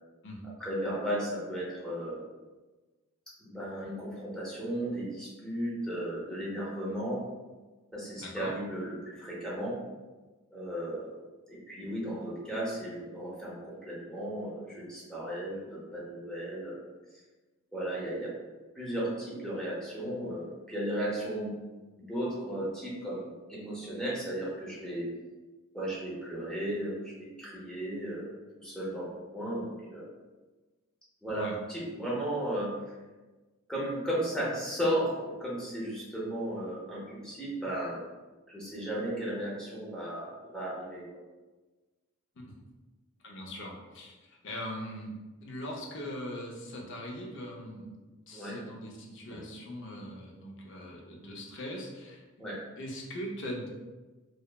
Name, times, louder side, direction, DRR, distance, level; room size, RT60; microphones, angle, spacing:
voice 1, 0.6-2.2 3.4-7.2 7.9-9.8 10.5-11.2 11.5-16.8 17.7-18.3 18.7-21.5 22.1-25.0 25.7-30.1 31.2-32.7 33.7-38.0 38.5-41.0 48.3-48.6 49.3-49.4 52.4-52.6, right 1 dB, 5° left, -6 dB, 0.7 m, -35 dB
voice 2, 8.2-8.5 31.3-31.5 42.4-42.5 43.2-45.2 45.4-52.5 52.8-53.7, equal, 60° left, -1 dB, 0.5 m, -41 dB
3.0 x 2.0 x 2.2 m, 1.2 s
head